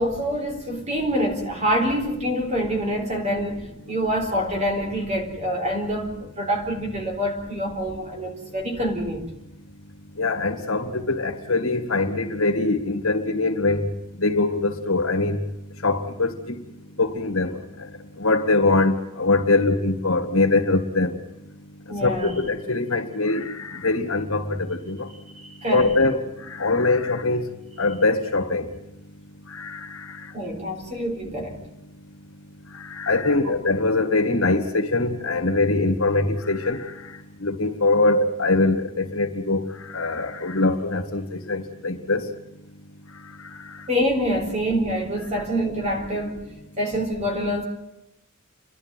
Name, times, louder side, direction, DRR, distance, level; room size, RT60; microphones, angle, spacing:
voice 1, 0.0-9.3 21.9-22.3 25.3-26.0 30.3-31.6 33.4-33.6 43.9-46.4 46.8-47.6, equal, 30° right, 3.9 m, -26 dB
voice 2, 10.2-13.9 14.2-15.4 15.8-16.6 17.0-17.6 18.2-21.1 22.0-25.1 25.7-26.2 26.5-27.4 27.8-28.7 29.5-30.1 32.8-36.9 37.4-42.2, left 3 dB, 70° left, 2.1 m, -22 dB
29.5 x 11.5 x 9.3 m
head